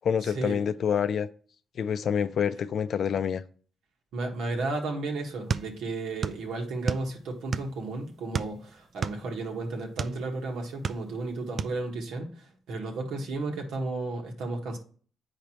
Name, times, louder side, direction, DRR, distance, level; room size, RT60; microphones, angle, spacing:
voice 1, 0.0-1.3 1.8-3.4, left 7 dB, 60° left, 0.5 m, -27 dB
voice 2, 4.1-12.3 12.7-14.8, right 3 dB, 80° right, 1.6 m, -33 dB
sound 1, 5.5-6.4 6.7-7.8 8.3-10.2 10.6-11.3 11.6-11.8, right 6 dB, 45° right, 0.4 m, -31 dB
8.2 x 5.1 x 3.0 m
cardioid pair, 90°, 0 cm